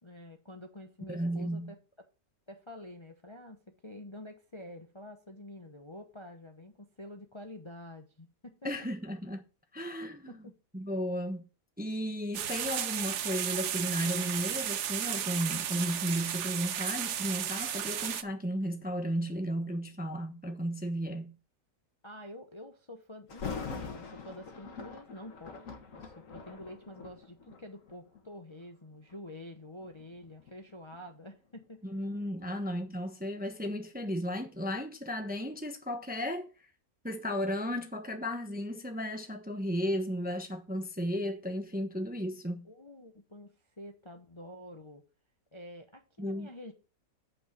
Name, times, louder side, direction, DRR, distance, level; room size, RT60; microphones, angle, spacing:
voice 1, 0.0-1.8 2.5-8.5 10.3-10.5 22.0-25.6 25.9-31.8 42.6-45.0 45.5-46.7, left 1 dB, 25° left, 0.8 m, -48 dB
voice 2, 1.1-1.7 8.6-9.4 9.7-10.4 10.7-11.4 11.8-21.3 31.8-36.5 37.0-42.7 46.2-46.5, equal, 5° right, 0.8 m, -34 dB
sound 1, 12.3-18.2, right 10 dB, 60° right, 0.9 m, -34 dB
Thunder, 23.3-28.3 28.9-29.2 29.8-32.6 32.9-33.0, left 5 dB, 60° left, 1.7 m, -44 dB
8.5 x 5.5 x 6.0 m
omnidirectional pair, 1.6 m